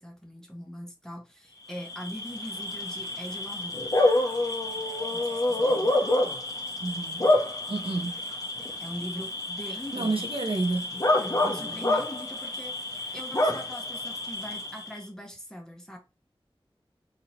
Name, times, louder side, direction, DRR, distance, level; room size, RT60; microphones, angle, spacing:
voice 1, 0.0-3.8 5.1-6.0 8.8-10.3 11.2-16.0, equal, 5° left, 1.1 m, -41 dB
Bark / Cricket, 1.7-15.0, left 1 dB, 35° left, 0.9 m, -28 dB
voice 2, 6.8-7.3 7.7-8.2 9.9-10.9, right 3 dB, 70° right, 0.9 m, -30 dB
3.1 x 2.8 x 4.0 m
wide cardioid pair, 65°, 10 cm